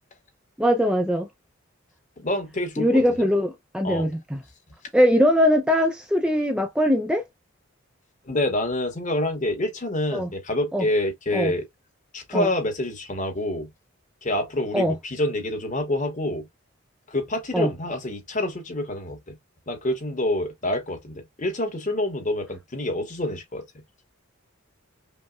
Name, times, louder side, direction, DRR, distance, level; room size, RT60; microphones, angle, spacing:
voice 1, 0.6-1.3 2.8-4.4 4.9-7.2 10.1-10.3 10.7-10.9 11.3-11.5 12.3-12.5 14.7-15.0 17.5-17.7, equal, 5° right, 0.3 m, -21 dB
voice 2, 2.2-3.0 3.8-4.1 8.3-11.6 12.1-13.7 14.2-16.5 17.1-19.3 19.7-23.6, left 1 dB, 35° left, 1.0 m, -27 dB
5.3 x 2.0 x 2.3 m
head